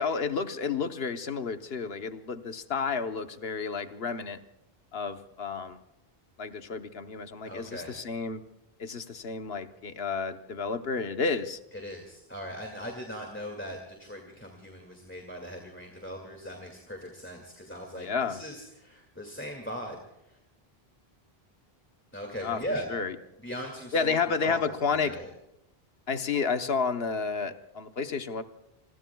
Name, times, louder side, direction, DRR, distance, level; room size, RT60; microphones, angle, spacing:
voice 1, 0.0-4.4 4.9-5.8 6.4-8.4 8.8-11.6 17.9-18.4 22.4-22.6 22.9-23.2 23.9-25.2 26.1-28.4, left 5 dB, 70° left, 8 dB, 1.2 m, -31 dB
voice 2, 7.4-8.0 11.8-20.0 22.1-22.9 23.4-24.6 24.9-25.3, equal, 10° left, 1 dB, 2.2 m, -39 dB
27.5 x 21.5 x 2.3 m, 0.89 s
omnidirectional pair, 1.0 m